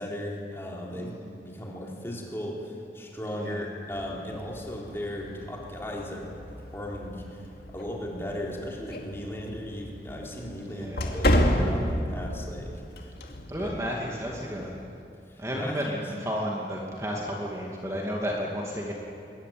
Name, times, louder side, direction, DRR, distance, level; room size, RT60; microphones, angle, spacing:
voice 1, 0.0-6.3 6.7-12.7 13.0-13.1 13.6-13.7 15.3-16.0, left 1 dB, 15° left, -2 dB, 4.0 m, -36 dB
voice 2, 0.9-1.2 3.3-3.6 10.7-11.3 13.5-14.8 15.4-18.9, equal, 15° right, -2 dB, 2.4 m, -32 dB
sound 1, 3.9-14.8, equal, 60° left, 2.6 m, -32 dB
23.5 x 22.0 x 9.5 m, 2.6 s
head